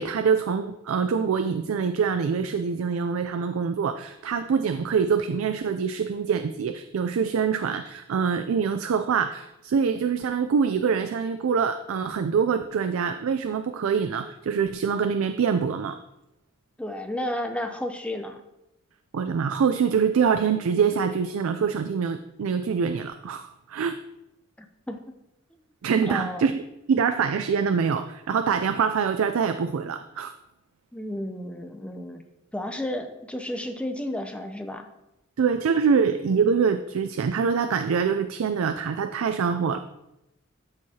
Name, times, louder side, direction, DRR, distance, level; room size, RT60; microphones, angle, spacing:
voice 1, 0.0-16.0 19.1-23.9 25.8-26.6 26.9-30.3 35.4-39.8, right 6 dB, 80° right, 9 dB, 0.4 m, -25 dB
voice 2, 16.8-18.4 24.6-25.0 26.0-26.5 30.9-32.2 32.5-34.9, left 1 dB, 5° left, 5 dB, 0.6 m, -32 dB
12.5 x 4.6 x 2.8 m, 0.90 s
head